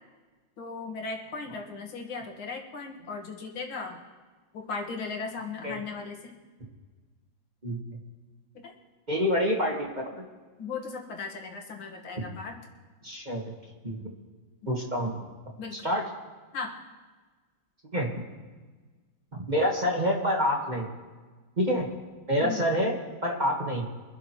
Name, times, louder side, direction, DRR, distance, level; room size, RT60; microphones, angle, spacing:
voice 1, 0.6-4.0 4.5-6.2 10.6-12.5 15.6-15.7 16.5-16.7 22.4-22.6, left 4 dB, 90° left, 1 dB, 2.4 m, -37 dB
voice 2, 7.6-8.0 9.1-10.2 13.0-13.5 13.8-14.0 14.7-15.2 15.7-16.1 17.9-18.1 19.3-20.9 21.6-21.9 22.3-23.9, equal, 25° right, 0 dB, 1.4 m, -27 dB
24.5 x 12.0 x 3.0 m, 1.4 s
omnidirectional pair, 2.2 m